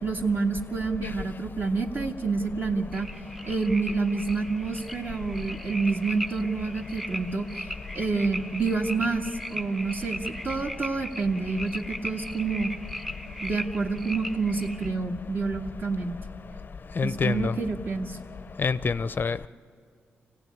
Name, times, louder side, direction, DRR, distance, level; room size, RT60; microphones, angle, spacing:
voice 1, 0.0-3.1 3.4-7.7 8.0-12.7 13.4-16.2 17.0-18.2, right 4 dB, 50° right, 2 dB, 2.0 m, -28 dB
sound 1, 2.9-14.9, equal, 5° right, 0.6 m, -38 dB
voice 2, 17.0-17.5 18.6-19.5, left 5 dB, 45° left, 14 dB, 0.5 m, -26 dB
25.5 x 16.0 x 9.5 m, 2.3 s
cardioid pair, 70°, 5 cm